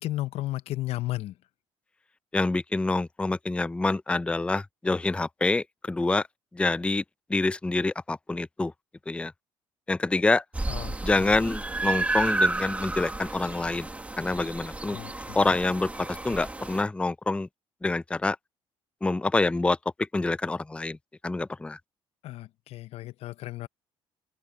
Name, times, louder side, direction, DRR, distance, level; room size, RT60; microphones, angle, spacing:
voice 1, 0.0-1.3 10.7-11.3 14.9-15.4 22.2-23.7, left 16 dB, 70° left, 0.7 m, -34 dB
voice 2, 2.3-6.2 6.5-7.0 7.3-8.7 9.1-9.3 9.9-10.4 11.0-13.9 14.2-15.0 15.4-17.5 17.8-18.4 19.0-19.8 20.1-21.0 21.2-21.8, left 2 dB, 10° left, 0.5 m, -26 dB
sound 1, 10.5-16.8, right 2 dB, 10° right, 1.7 m, -31 dB
supercardioid pair, 85°, 11 cm